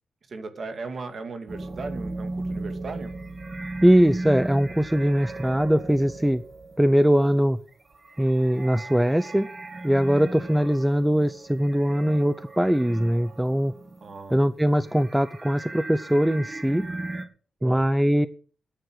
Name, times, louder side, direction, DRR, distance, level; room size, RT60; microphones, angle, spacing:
voice 1, 0.3-3.1 14.0-14.5 17.6-17.9, right 4 dB, 45° right, 8 dB, 2.3 m, -37 dB
sound 1, 1.5-14.3 14.6-17.3, right 2 dB, 25° right, 1.8 m, -37 dB
voice 2, 3.8-6.4 6.8-7.6 8.2-9.5 9.8-13.7 14.3-16.9 17.6-18.3, equal, 5° right, 14 dB, 0.5 m, -21 dB
12.5 x 9.4 x 6.4 m, 0.40 s
wide cardioid pair, 160°, 0 cm